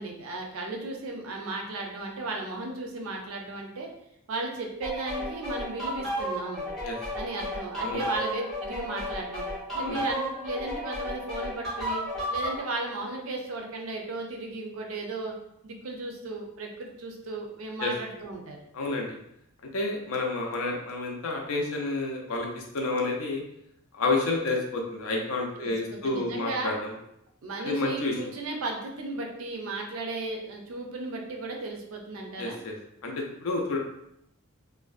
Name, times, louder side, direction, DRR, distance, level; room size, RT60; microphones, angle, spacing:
voice 1, 0.0-3.9 4.3-6.7 7.1-9.5 9.7-12.0 12.3-15.3 15.6-18.6 25.6-25.7 26.0-26.8 27.4-32.6, right 2 dB, 70° right, 1 dB, 0.5 m, -35 dB
sound 1, 4.8-12.6, equal, ahead, 0.6 m, -33 dB
voice 2, 18.7-19.1 19.7-23.4 23.9-26.9 27.6-28.2 32.4-32.7 33.0-33.8, left 2 dB, 70° left, 0 dB, 0.5 m, -30 dB
2.5 x 2.1 x 2.4 m, 0.79 s
head